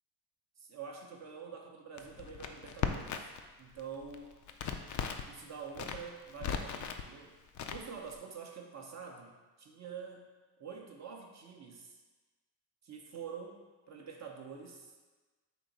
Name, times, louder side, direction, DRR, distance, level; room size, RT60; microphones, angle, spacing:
voice 1, 0.6-3.3 3.6-4.3 5.3-7.4 7.7-10.3 10.6-12.0 12.8-13.6 13.9-15.0, right 6 dB, 35° right, 1 dB, 0.7 m, -46 dB
Crackle, 2.0-3.5 3.7-5.3 5.7-7.0 7.5-8.2, left 7 dB, 40° left, 0.4 m, -37 dB
3.8 x 2.8 x 4.0 m, 1.3 s
supercardioid pair, 70°, 48 cm